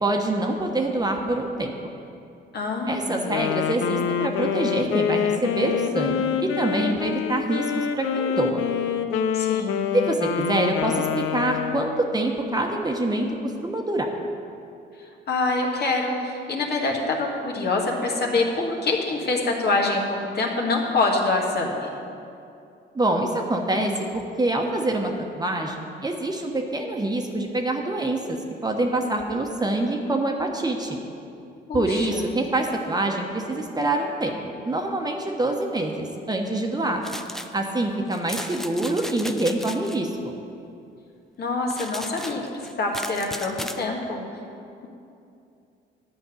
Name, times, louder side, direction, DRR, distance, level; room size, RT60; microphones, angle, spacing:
voice 1, 0.0-1.7 2.9-8.6 9.9-14.1 22.9-25.8 26.0-28.4 28.6-31.0 31.7-34.4 34.6-37.0 37.5-40.3, right 2 dB, 20° right, 2 dB, 1.1 m, -25 dB
voice 2, 2.5-3.3 9.3-9.9 15.3-21.9 31.7-32.3 41.4-44.2, left 3 dB, 55° left, 0 dB, 1.7 m, -25 dB
Wind instrument woodwind instrument, 3.2-12.1, left 8 dB, 90° left, 0.5 m, -26 dB
sound 1, 37.0-37.5 38.1-40.0 41.7-43.8, equal, ahead, 0.5 m, -36 dB
11.0 x 5.2 x 8.3 m, 2.6 s
cardioid pair, 90°, 20 cm